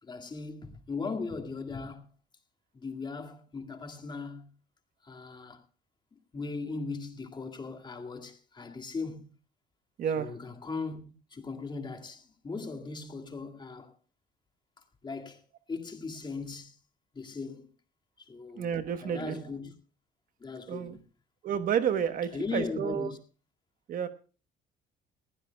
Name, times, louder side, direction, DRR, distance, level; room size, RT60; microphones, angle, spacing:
voice 1, 0.0-2.1 2.7-4.5 5.0-5.6 6.3-9.3 10.2-11.0 11.3-13.9 15.0-15.4 15.7-16.8 17.1-17.7 18.2-18.8 19.0-19.7 20.4-21.0 21.9-22.0 22.3-23.2, left 4 dB, 25° left, 2.2 m, -38 dB
voice 2, 18.6-19.4 20.7-21.0 21.4-23.1 23.9-24.1, right 8 dB, 55° right, 1.2 m, -30 dB
21.0 x 15.5 x 2.3 m
cardioid pair, 110°, 17 cm